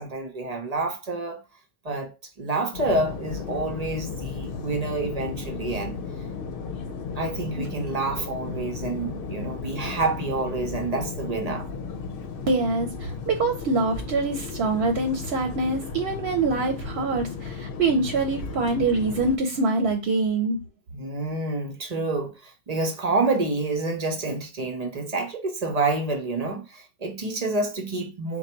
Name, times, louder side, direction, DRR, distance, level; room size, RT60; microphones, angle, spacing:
voice 1, 0.0-1.4 1.8-6.0 7.2-11.7 20.9-28.4, right 3 dB, 45° right, 0.8 m, -28 dB
sound 1, 2.7-19.4, left 5 dB, 65° left, 0.8 m, -35 dB
voice 2, 12.5-20.6, right 3 dB, 75° right, 0.9 m, -24 dB
3.9 x 2.2 x 4.4 m
omnidirectional pair, 1.0 m